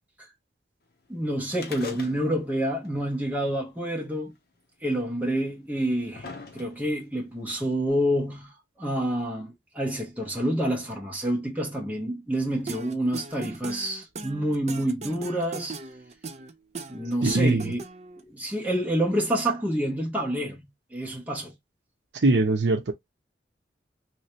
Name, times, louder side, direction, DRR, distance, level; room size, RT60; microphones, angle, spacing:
voice 1, 1.1-4.3 4.8-6.3 6.5-8.5 8.8-15.8 16.9-17.8 18.2-21.5, right 1 dB, 10° right, 1.3 m, -28 dB
sound 1, 1.5-2.6 2.8-2.9 3.9-4.0 4.9-5.0 5.7-7.0 7.9-8.0, left 4 dB, 60° left, 0.8 m, -42 dB
sound 2, 12.7-18.2, right 4 dB, 40° right, 0.5 m, -39 dB
voice 2, 17.2-17.7 22.1-22.9, right 2 dB, 75° right, 0.7 m, -22 dB
3.2 x 3.1 x 2.9 m
head